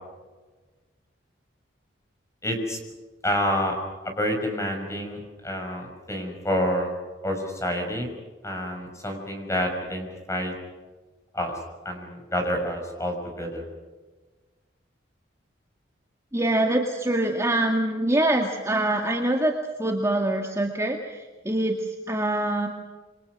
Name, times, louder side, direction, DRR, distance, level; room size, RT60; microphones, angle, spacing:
voice 1, 2.4-2.8 3.2-3.7 4.0-6.9 7.2-8.1 8.4-10.5 11.3-11.5 11.8-13.7, equal, 15° left, 3 dB, 5.9 m, -28 dB
voice 2, 16.3-19.5 19.8-22.7, right 1 dB, 15° right, 1 dB, 2.0 m, -24 dB
28.0 x 25.0 x 6.2 m, 1.3 s
head